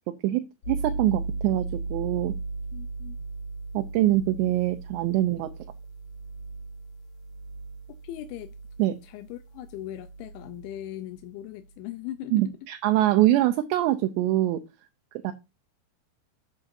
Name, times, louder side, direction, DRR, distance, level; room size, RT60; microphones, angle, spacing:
voice 1, 0.2-2.3 3.7-5.5 8.8-8.9 12.3-14.6 15.2-15.3, right 14 dB, 80° right, 2.8 m, -24 dB
sound 1, 0.6-11.3, right 3 dB, 40° left, 4.0 m, -37 dB
voice 2, 2.7-3.2 8.0-8.5 9.0-12.3, left 13 dB, 85° left, 3.0 m, -39 dB
10.5 x 8.4 x 2.7 m
omnidirectional pair, 5.3 m